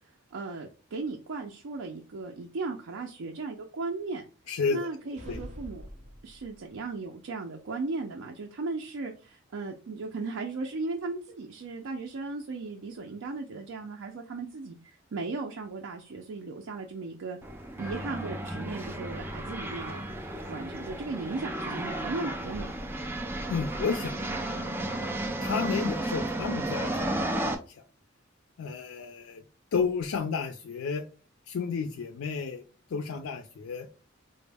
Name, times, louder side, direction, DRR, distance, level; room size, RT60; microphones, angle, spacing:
voice 1, 0.3-4.2 4.7-5.9 6.2-17.4 17.8-20.0 20.5-22.7, right 3 dB, 70° right, 2 dB, 0.4 m, -36 dB
voice 2, 4.5-4.9 5.3-5.4 23.5-24.2 25.4-27.8 28.6-29.4 29.7-31.1 31.5-32.6 32.9-33.9, left 5 dB, 85° left, 4 dB, 0.4 m, -32 dB
sound 1, 5.2-6.8, equal, 35° right, 0.8 m, -44 dB
sound 2, 17.4-27.5, right 1 dB, 10° right, 0.3 m, -33 dB
4.2 x 2.0 x 3.3 m, 0.36 s
head